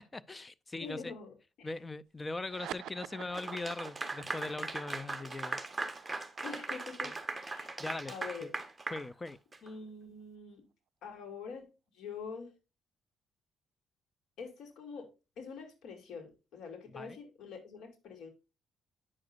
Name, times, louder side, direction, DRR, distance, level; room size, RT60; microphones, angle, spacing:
voice 1, 0.1-1.1 1.6-5.6 7.0-7.1 7.8-8.1 8.4-8.5 8.9-9.4 16.9-17.2, left 2 dB, 20° left, 0.5 m, -40 dB
voice 2, 0.8-1.7 6.4-7.1 7.4-7.7 8.1-8.6 9.6-10.6 11.0-12.5 14.4-18.3, left 5 dB, 75° left, 2.7 m, -45 dB
sound 1, 2.4-9.2, right 11 dB, 75° right, 0.4 m, -49 dB
Clapping / Applause, 3.3-9.7, right 3 dB, 15° right, 1.2 m, -39 dB
8.5 x 6.6 x 2.5 m
cardioid pair, 90°, 0 cm